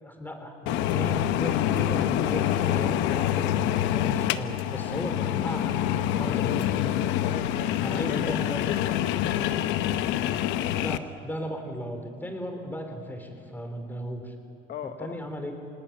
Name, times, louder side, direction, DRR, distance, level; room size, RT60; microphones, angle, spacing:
voice 1, 0.0-6.8 7.8-8.6 10.8-14.3 15.0-15.5, equal, 10° left, 5 dB, 3.6 m, -36 dB
sound 1, 0.7-11.0, left 11 dB, 85° left, 0.9 m, -26 dB
voice 2, 7.2-9.6 14.7-15.2, left 9 dB, 50° left, 8 dB, 1.0 m, -38 dB
26.5 x 19.0 x 9.1 m, 2.5 s
cardioid pair, 120°, 19 cm